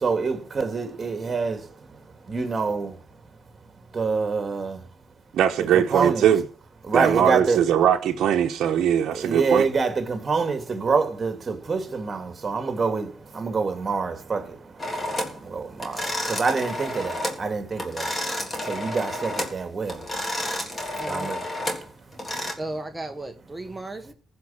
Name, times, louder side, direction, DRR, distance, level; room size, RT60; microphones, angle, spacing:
voice 1, 0.0-1.6 2.3-2.9 3.9-4.8 5.6-6.3 6.9-7.6 9.1-13.1 13.3-14.4 15.4-18.1 18.7-20.0 21.1-21.4, right 4 dB, 35° right, 2.3 m, -26 dB
voice 2, 5.3-6.4 6.9-9.7, right 9 dB, 75° right, 1.0 m, -21 dB
sound 1, 14.8-15.4 15.8-17.4 17.7-19.6 19.9-22.5, left 1 dB, 25° left, 3.4 m, -30 dB
voice 3, 21.0-21.3 22.6-24.1, right 2 dB, 15° right, 1.2 m, -35 dB
15.0 x 5.3 x 8.7 m
cardioid pair, 90°, 0 cm